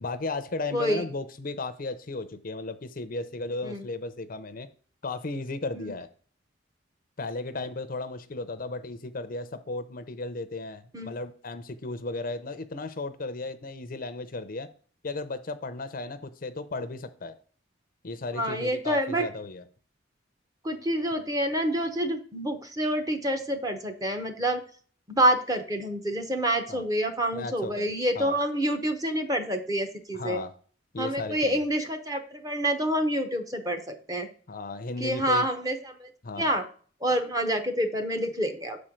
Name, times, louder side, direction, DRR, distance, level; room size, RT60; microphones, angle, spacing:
voice 1, 0.0-4.7 5.0-6.1 7.2-14.7 15.0-17.3 18.0-19.6 26.7-26.8 27.3-28.4 30.1-30.5 30.9-31.6 34.5-35.5 36.2-36.5, left 3 dB, 45° left, 11 dB, 0.6 m, -35 dB
voice 2, 0.7-1.0 3.6-3.8 5.7-5.9 10.9-11.1 18.4-19.2 20.6-24.6 25.1-30.4 31.0-34.3 35.0-36.1 36.4-36.6 37.0-38.8, right 1 dB, 20° right, 6 dB, 0.8 m, -27 dB
6.8 x 4.4 x 5.1 m, 0.43 s
head